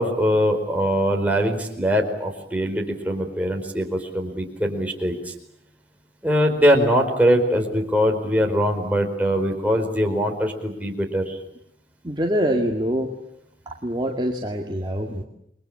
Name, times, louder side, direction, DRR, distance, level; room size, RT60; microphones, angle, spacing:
voice 1, 0.0-5.3 6.2-11.4, equal, 10° right, 1 dB, 4.5 m, -22 dB
voice 2, 12.0-13.1 13.7-15.2, equal, 25° right, 1 dB, 2.2 m, -25 dB
29.5 x 23.0 x 8.7 m, 0.75 s
head